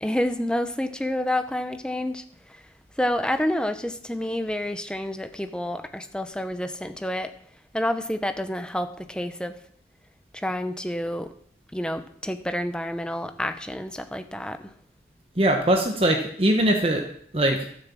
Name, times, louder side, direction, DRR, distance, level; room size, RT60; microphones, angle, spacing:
voice 1, 0.0-2.2 2.5-2.6 3.0-7.3 7.7-9.5 10.3-11.3 11.7-14.6, left 1 dB, 5° left, 8 dB, 0.7 m, -28 dB
voice 2, 15.4-17.0 17.3-17.6, right 1 dB, 30° right, 3 dB, 1.2 m, -21 dB
13.5 x 7.0 x 7.5 m, 0.65 s
head